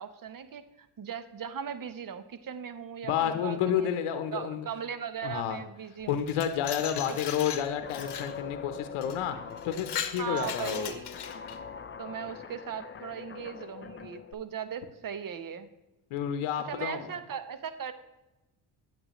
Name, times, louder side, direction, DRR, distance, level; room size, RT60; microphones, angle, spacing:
voice 1, 0.0-3.9 4.3-6.2 7.0-7.2 10.2-11.1 12.0-15.7 16.7-17.9, right 7 dB, 40° right, 12 dB, 0.9 m, -38 dB
voice 2, 3.0-4.7 5.2-5.6 6.1-9.4 9.6-10.9 16.1-17.1, left 9 dB, 75° left, 8 dB, 0.8 m, -30 dB
Glass, 6.1-8.4 9.0-9.2 9.6-11.6, left 9 dB, 55° left, 0.9 m, -38 dB
Guitar, 7.8-14.3, left 7 dB, 25° left, 0.6 m, -43 dB
8.8 x 8.2 x 3.0 m, 1.0 s
supercardioid pair, 55°, 50 cm